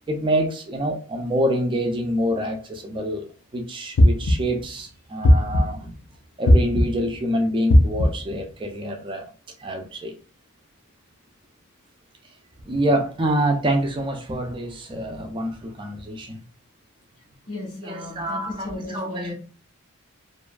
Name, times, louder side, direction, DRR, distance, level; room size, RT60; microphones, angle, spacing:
voice 1, 0.1-5.9 6.4-9.2 9.6-10.2 12.7-16.4 17.8-19.3, right 1 dB, 20° right, 0.4 m, -26 dB
sound 1, 4.0-4.6 5.2-5.9 6.5-7.1 7.7-8.3, left 1 dB, 65° left, 0.4 m, -17 dB
voice 2, 17.5-19.3, left 2 dB, 85° left, 1.2 m, -34 dB
2.6 x 2.3 x 2.2 m
head